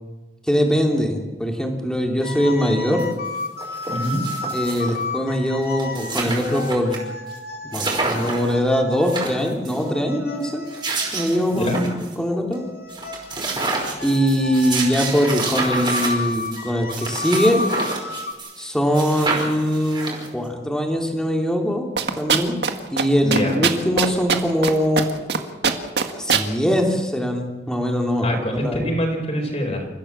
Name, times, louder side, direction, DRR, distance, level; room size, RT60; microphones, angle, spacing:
voice 1, 0.5-3.1 4.5-7.0 7.7-10.6 11.1-12.6 14.0-17.6 18.6-21.9 22.2-22.6 22.9-25.1 26.1-29.0, equal, 5° left, 1 dB, 3.2 m, -22 dB
sound 1, 2.2-11.8 12.5-18.3, left 3 dB, 55° left, 2.4 m, -32 dB
sound 2, 3.0-3.1 3.3-5.0 5.5-5.6 5.7-7.0 7.3-7.4 7.7-8.5 8.9-9.8 10.5-12.1 12.5-12.6 12.9-18.6 18.9-20.5, right 3 dB, 25° right, 5.2 m, -28 dB
voice 2, 3.9-4.2 11.5-11.8 23.2-23.6 28.2-29.9, equal, 35° left, 1 dB, 4.7 m, -24 dB
sound 3, 22.0-22.7 23.0-23.1 23.3-24.7 25.0-25.4 25.6-26.5, right 6 dB, 65° right, 1.9 m, -19 dB
29.0 x 15.0 x 7.4 m, 1.2 s
head